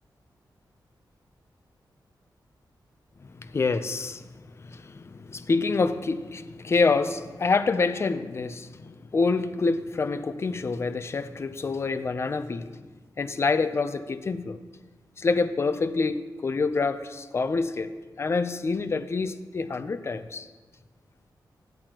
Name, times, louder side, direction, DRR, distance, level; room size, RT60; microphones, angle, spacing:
voice 1, 3.2-4.3 4.6-12.7 13.2-14.6 15.2-17.9 18.2-20.5, left 4 dB, 35° left, 0.4 m, -27 dB
14.0 x 10.5 x 2.9 m
wide cardioid pair, 165°, 8 cm